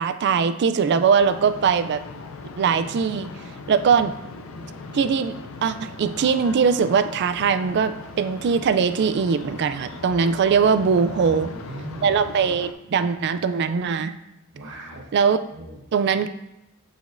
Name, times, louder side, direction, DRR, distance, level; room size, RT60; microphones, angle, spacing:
voice 1, 0.0-2.0 2.6-3.3 3.7-4.1 4.9-5.4 5.6-11.5 12.0-14.1 15.1-15.4 15.9-16.3, right 6 dB, 55° right, 11 dB, 0.3 m, -21 dB
sound 1, 1.2-12.7, left 3 dB, 75° left, 0.5 m, -39 dB
voice 2, 11.1-12.1 12.8-13.0 14.5-15.1 15.5-15.7, right 2 dB, 90° right, -6 dB, 1.1 m, -39 dB
8.2 x 5.0 x 2.6 m, 0.87 s
head